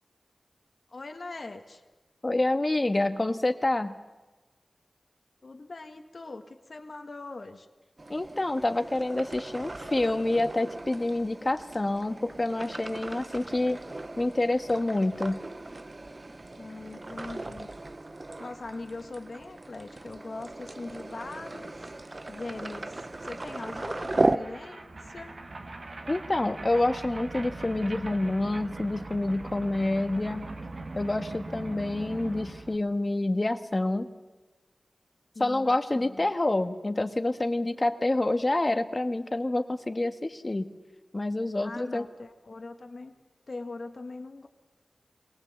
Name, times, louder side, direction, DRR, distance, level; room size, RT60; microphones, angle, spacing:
voice 1, 0.9-1.8 5.4-7.7 16.6-17.7 18.4-21.9 22.3-25.3 35.3-36.3 41.6-43.1 43.5-44.5, left 3 dB, 65° left, 6 dB, 1.6 m, -41 dB
voice 2, 2.2-3.9 8.1-13.8 14.2-15.4 26.1-30.5 30.9-34.1 35.4-40.7 41.1-42.0, left 2 dB, 40° left, 9 dB, 1.5 m, -27 dB
sound 1, 8.0-24.4, right 2 dB, 45° right, 0.8 m, -36 dB
sound 2, 21.6-21.7 21.9-32.8, right 2 dB, 60° right, 1.9 m, -41 dB
23.5 x 18.5 x 8.0 m, 1.2 s
cardioid pair, 40°, 0 cm